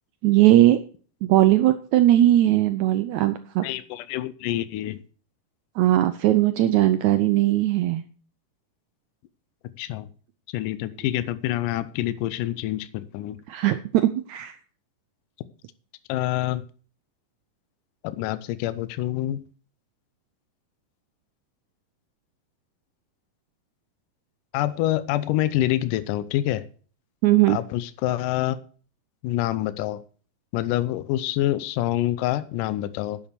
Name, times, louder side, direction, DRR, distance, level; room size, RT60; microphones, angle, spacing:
voice 1, 0.2-0.8 1.2-3.6 5.8-8.0 13.5-14.6 27.2-27.6, right 14 dB, 80° right, 10 dB, 1.7 m, -19 dB
voice 2, 3.6-5.0 9.8-10.1 10.5-13.4 16.1-16.6 18.0-19.4 24.5-26.6 27.5-28.6 29.2-30.0 30.5-33.2, left 14 dB, 80° left, 13 dB, 2.2 m, -26 dB
10.5 x 7.3 x 6.8 m, 0.42 s
omnidirectional pair, 3.9 m